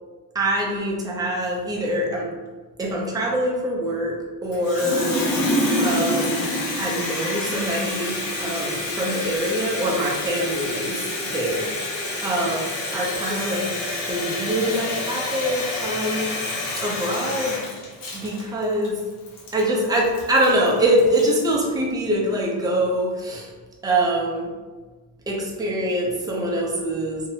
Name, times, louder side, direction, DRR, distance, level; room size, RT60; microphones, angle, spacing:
voice 1, 0.3-2.3 2.8-4.2 4.4-5.3 5.8-11.0 11.3-11.7 12.2-12.6 12.9-13.7 14.1-16.3 16.8-17.6 18.1-19.0 19.5-23.4 23.8-24.5 25.3-27.2, right 1 dB, 10° right, -2 dB, 0.4 m, -24 dB
Water tap faucet, 4.5-21.4, left 1 dB, 75° left, 0.8 m, -27 dB
2.7 x 2.0 x 2.7 m, 1.3 s
cardioid pair, 130°, 35 cm